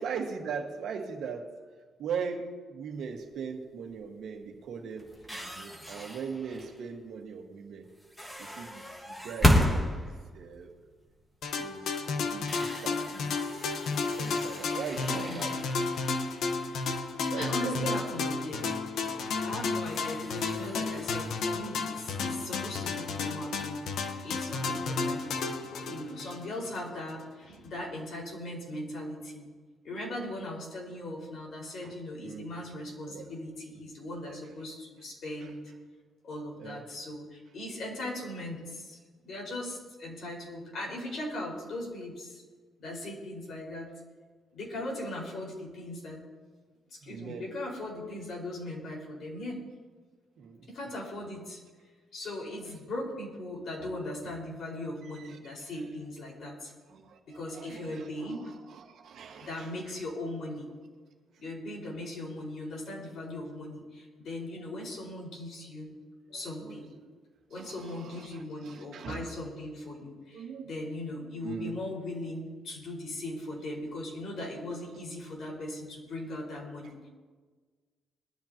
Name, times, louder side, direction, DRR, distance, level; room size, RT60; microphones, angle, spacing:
voice 1, 0.0-1.5 2.0-7.9 8.4-9.7 9.9-10.7 11.6-11.9 12.2-13.3 13.9-15.6 17.3-18.0 19.1-19.2 31.8-31.9 32.2-32.5 33.1-33.3 35.4-35.5 36.6-36.8 47.0-47.5 50.4-50.6 53.8-53.9 55.1-55.4 56.9-60.0 66.3-67.1 67.5-69.3 70.3-70.7 71.4-71.8, right 6 dB, 65° right, 2 dB, 1.7 m, -40 dB
sound 1, 2.9-3.3 3.9-4.1 4.4-7.0 8.0-11.4 11.7-11.8 12.3-17.8 18.1-18.2 19.1-19.2 19.6-21.5, left 1 dB, 10° left, 1.7 m, -33 dB
sound 2, 11.4-26.8, left 4 dB, 70° left, 1.1 m, -32 dB
voice 2, 15.0-15.5 17.2-18.7 19.4-23.8 24.2-29.4 29.8-35.6 36.2-39.0 39.2-42.4 42.8-43.9 44.5-46.2 46.9-49.6 50.7-51.6 52.1-56.7 57.3-58.5 59.4-60.7 61.4-65.9 66.3-66.9 67.5-77.1, left 1 dB, 50° left, -2 dB, 5.0 m, -39 dB
21.0 x 13.0 x 3.0 m, 1.4 s
cardioid pair, 160°, 0 cm